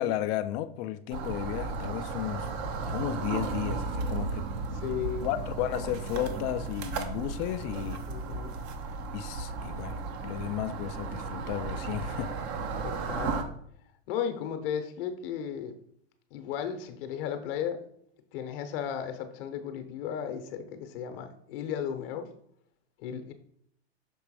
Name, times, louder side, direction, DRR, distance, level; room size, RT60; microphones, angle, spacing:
voice 1, 0.0-2.5 2.8-4.5 5.2-8.0 9.1-12.3, left 12 dB, 40° left, 0.4 m, -33 dB
sound 1, 1.1-13.4, right 4 dB, 45° right, 0.9 m, -34 dB
voice 2, 4.7-5.3 8.1-8.6 12.8-13.4 14.1-15.7 16.3-17.8 18.3-22.3 23.0-23.3, left 8 dB, 55° left, 0.9 m, -35 dB
6.1 x 3.3 x 4.8 m
hypercardioid pair, 115°, 33 cm